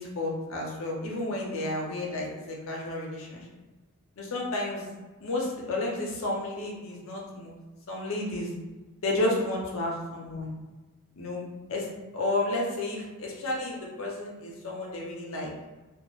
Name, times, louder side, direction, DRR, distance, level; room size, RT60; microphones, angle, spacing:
voice 1, 0.0-3.5 4.2-4.9 5.2-7.6 7.9-8.5 9.0-10.5 11.2-11.4 11.7-11.9 12.1-15.5, left 2 dB, 65° left, -2 dB, 0.6 m, -31 dB
2.2 x 2.0 x 2.9 m, 1.2 s
head